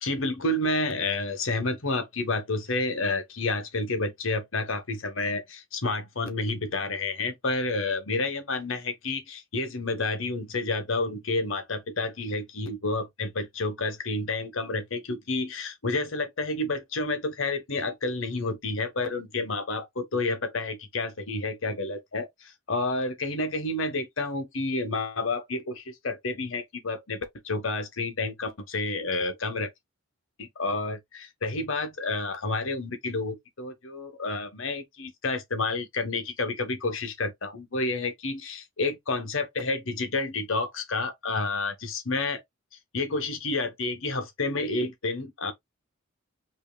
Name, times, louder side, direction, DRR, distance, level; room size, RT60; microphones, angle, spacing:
voice 1, 0.0-29.7 30.4-42.4 42.9-45.5, left 3 dB, 70° left, 1.2 m, -30 dB
5.5 x 3.0 x 2.3 m
head